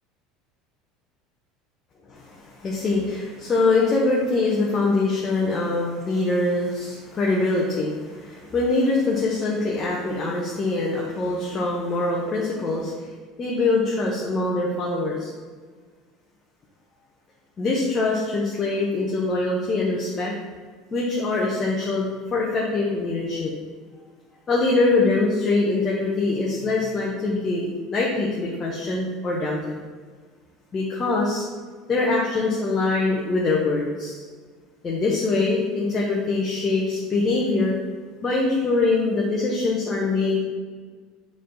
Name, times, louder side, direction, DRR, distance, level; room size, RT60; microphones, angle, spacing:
voice 1, 2.1-13.1 13.4-15.3 17.6-20.3 20.9-23.5 24.5-29.8 30.7-31.4 31.9-34.2 34.8-37.7 38.2-40.4, left 3 dB, 30° left, -4 dB, 1.1 m, -23 dB
6.6 x 3.7 x 3.9 m, 1.5 s
figure-of-eight pair, 70°, 0 cm